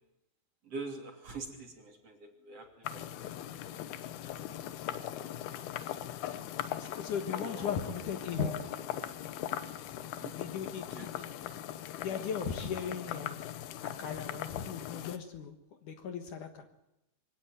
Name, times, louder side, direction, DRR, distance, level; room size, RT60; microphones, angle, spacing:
voice 1, 0.6-3.3 4.2-4.9 5.2-5.4 6.0-6.3 7.3-7.7 8.4-8.5 10.0-10.4 10.7-11.1 13.0-13.1, right 3 dB, 40° right, 3 dB, 3.5 m, -45 dB
sound 1, 2.8-15.2, left 11 dB, 90° left, 3.0 m, -40 dB
voice 2, 6.8-8.5 10.3-11.6 11.9-13.4 13.8-15.6 15.8-16.6, left 7 dB, 60° left, 7 dB, 2.7 m, -37 dB
24.0 x 17.0 x 9.1 m, 0.89 s
omnidirectional pair, 4.5 m